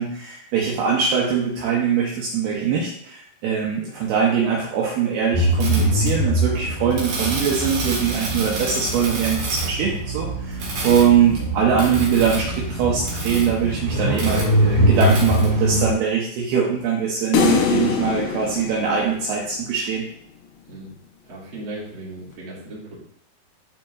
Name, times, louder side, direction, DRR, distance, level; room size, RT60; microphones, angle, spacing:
voice 1, 0.0-20.0, right 7 dB, 75° right, -3 dB, 2.6 m, -22 dB
sound 1, 5.3-15.9, right 1 dB, 60° right, 2.7 m, -23 dB
sound 2, 17.3-19.7, left 7 dB, 75° left, 2.5 m, -23 dB
voice 2, 21.2-23.0, right 2 dB, 35° right, -7 dB, 2.4 m, -36 dB
11.5 x 4.3 x 2.4 m, 0.68 s
omnidirectional pair, 5.1 m